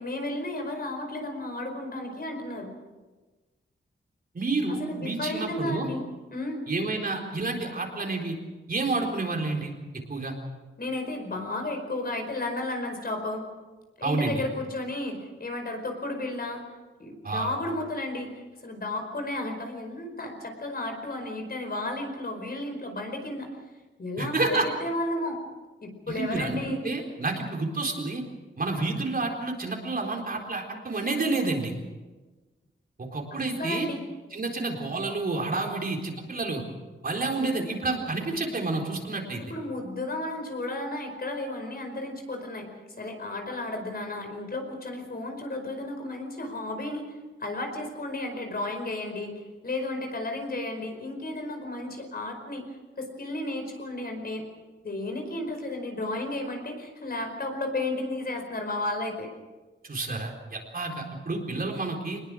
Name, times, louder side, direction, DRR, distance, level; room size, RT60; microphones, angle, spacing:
voice 1, 0.0-2.7 4.8-6.0 6.3-6.6 10.8-13.4 14.0-16.6 17.0-23.5 24.0-25.4 25.8-26.8 33.3-34.0 39.4-42.7 43.0-47.1 47.4-52.6 53.0-54.5 54.8-59.3, left 2 dB, 50° left, 4 dB, 5.0 m, -33 dB
voice 2, 4.3-5.9 6.7-8.4 8.7-9.7 10.1-10.3 14.0-14.4 17.2-17.5 24.2-24.7 26.1-28.2 28.6-31.7 33.0-33.9 34.3-36.6 37.0-39.4 59.8-62.2, right 3 dB, 45° right, 1 dB, 4.1 m, -29 dB
25.0 x 20.5 x 6.4 m, 1.2 s
wide cardioid pair, 155°, 21 cm